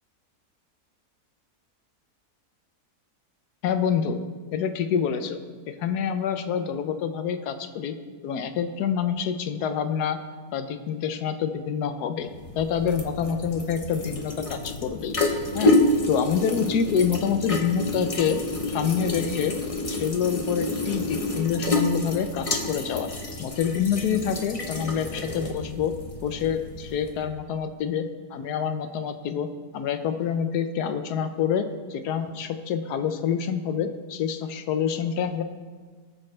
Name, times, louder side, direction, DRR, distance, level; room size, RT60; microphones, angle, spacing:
voice 1, 3.6-4.2 4.5-5.4 5.7-7.9 8.2-10.2 10.5-12.3 12.6-15.2 15.5-15.7 16.1-18.4 18.7-19.5 19.9-23.1 23.4-25.9 26.2-29.5 29.7-35.4, left 7 dB, 85° left, 9 dB, 1.3 m, -27 dB
sound 1, 12.2-27.3, left 2 dB, 30° left, 0.7 m, -28 dB
18.0 x 6.3 x 3.3 m, 1.5 s
omnidirectional pair, 1.7 m